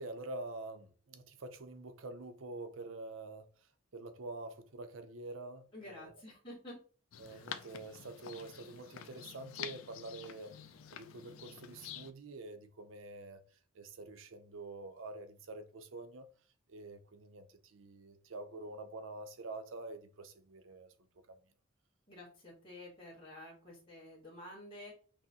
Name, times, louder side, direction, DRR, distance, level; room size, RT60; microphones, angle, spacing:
voice 1, 0.0-3.5 3.9-6.1 7.2-10.6 10.9-13.4 13.7-16.3 16.7-20.9 21.3-21.4, right 2 dB, 75° right, 0.5 m, -47 dB
voice 2, 5.7-6.8 7.3-7.5 22.1-24.9, left 1 dB, 25° left, 1.6 m, -50 dB
sound 1, 7.1-12.1, left 9 dB, 90° left, 0.4 m, -48 dB
5.9 x 2.1 x 2.8 m
head